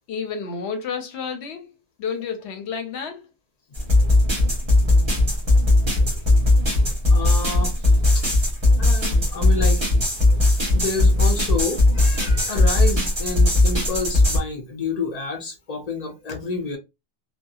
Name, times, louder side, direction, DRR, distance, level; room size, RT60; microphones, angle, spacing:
voice 1, 0.1-1.7 2.0-3.3, left 6 dB, 75° left, 0.9 m, -30 dB
sound 1, 3.7-14.4, left 2 dB, 25° right, 1.1 m, -18 dB
voice 2, 7.1-7.7 8.1-8.2 8.8-9.9 10.7-16.8, left 3 dB, 50° left, 0.5 m, -29 dB
2.6 x 2.3 x 2.3 m
omnidirectional pair, 1.2 m